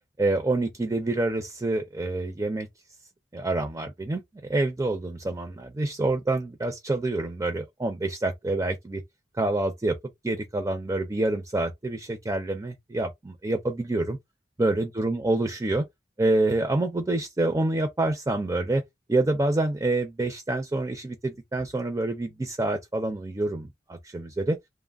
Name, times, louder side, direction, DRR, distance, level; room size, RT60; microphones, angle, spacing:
voice 1, 0.2-2.7 3.3-4.2 4.5-9.0 9.4-10.0 10.2-14.2 14.6-15.8 16.2-18.8 19.1-24.6, right 2 dB, 20° right, 0.4 m, -27 dB
3.1 x 2.0 x 2.3 m
head